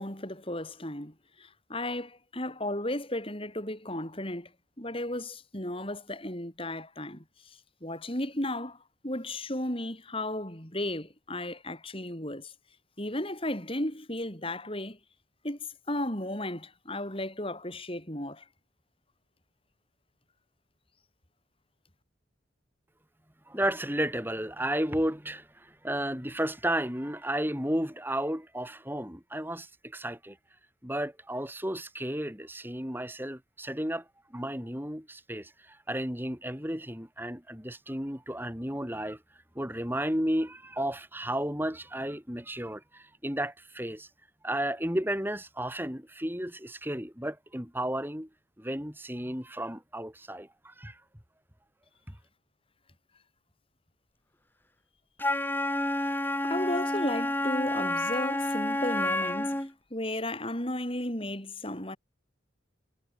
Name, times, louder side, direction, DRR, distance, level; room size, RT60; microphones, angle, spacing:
voice 1, 0.0-4.5 4.8-8.8 9.0-12.5 13.0-15.0 15.4-15.6 15.9-18.5 56.4-62.0, left 1 dB, 30° left, 7.2 m, -34 dB
voice 2, 23.5-30.4 30.8-39.2 39.5-44.1 44.4-48.3 48.6-51.0 52.1-52.2, right 1 dB, 10° right, 6.4 m, -33 dB
Wind instrument woodwind instrument, 55.2-59.7, left 1 dB, 10° left, 3.6 m, -29 dB
head